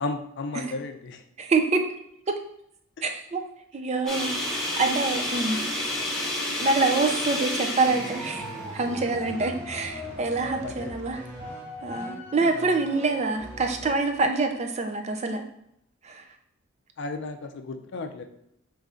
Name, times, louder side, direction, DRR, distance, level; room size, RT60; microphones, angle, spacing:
voice 1, 0.0-1.2 10.4-10.9 17.0-18.2, left 3 dB, 60° left, 7 dB, 0.4 m, -34 dB
voice 2, 1.4-1.8 2.3-2.4 3.0-3.4 3.7-4.3 4.8-5.6 6.6-8.4 8.7-11.2 11.8-15.4 16.0-16.2, right 3 dB, 35° right, 6 dB, 0.4 m, -26 dB
sound 1, 4.1-9.2, left 1 dB, ahead, 0.9 m, -30 dB
sound 2, 7.9-14.4, equal, 55° right, 1.4 m, -39 dB
3.8 x 3.2 x 3.6 m, 0.75 s
head